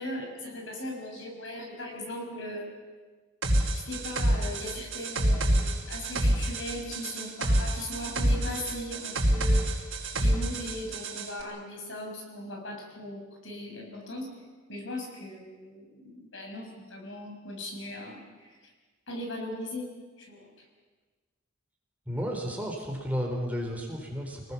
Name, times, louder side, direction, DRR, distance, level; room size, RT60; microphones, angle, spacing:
voice 1, 0.0-2.7 3.7-9.7 10.1-14.3 14.7-18.7 19.1-19.9 20.2-20.6, left 1 dB, 70° left, 1 dB, 6.4 m, -39 dB
sound 1, 3.4-11.3, right 1 dB, 75° right, 4.9 m, -27 dB
voice 2, 22.1-24.5, equal, 10° right, 0 dB, 4.0 m, -33 dB
26.5 x 20.0 x 7.3 m, 1.4 s
head